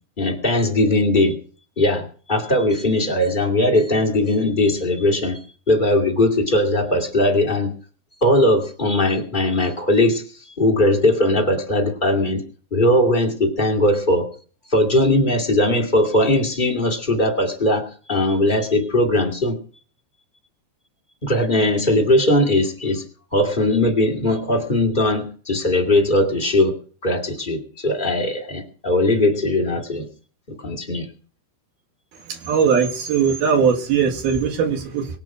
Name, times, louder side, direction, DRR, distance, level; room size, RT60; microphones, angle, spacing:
voice 1, 0.2-1.3 1.8-2.0 2.3-5.4 5.7-7.7 8.2-10.2 10.6-12.4 12.7-14.2 14.7-19.6 21.2-23.0 23.3-26.7 27.0-30.0 30.6-31.1, left 1 dB, 30° left, 2 dB, 0.9 m, -19 dB
voice 2, 32.3-35.1, right 6 dB, 60° right, 4 dB, 3.4 m, -19 dB
24.0 x 8.2 x 4.9 m, 0.42 s
omnidirectional pair, 5.4 m